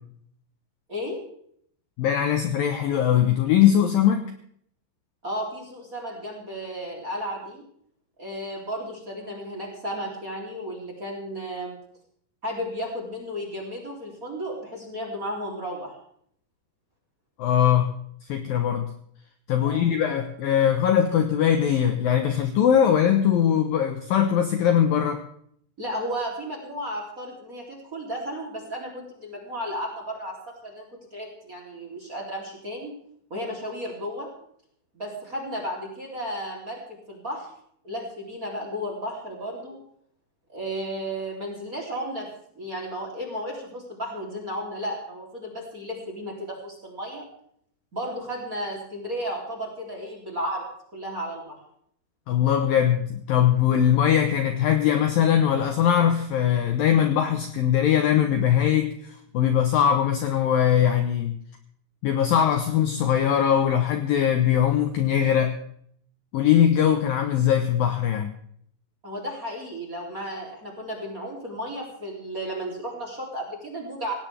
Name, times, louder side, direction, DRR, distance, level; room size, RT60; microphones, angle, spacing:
voice 1, 0.9-1.2 5.2-7.6 8.2-11.8 12.4-15.9 19.6-19.9 25.8-30.9 31.1-32.9 33.3-34.3 34.9-36.8 37.1-37.5 37.8-39.8 40.5-42.3 42.6-47.2 47.9-50.6 50.9-51.6 69.0-74.1, equal, 20° right, 0 dB, 2.8 m, -33 dB
voice 2, 2.0-4.3 17.4-17.9 18.3-18.9 19.5-25.2 52.3-61.3 62.0-65.6 66.3-68.3, left 9 dB, 75° left, 6 dB, 2.2 m, -21 dB
18.0 x 17.5 x 3.4 m, 0.65 s
omnidirectional pair, 5.3 m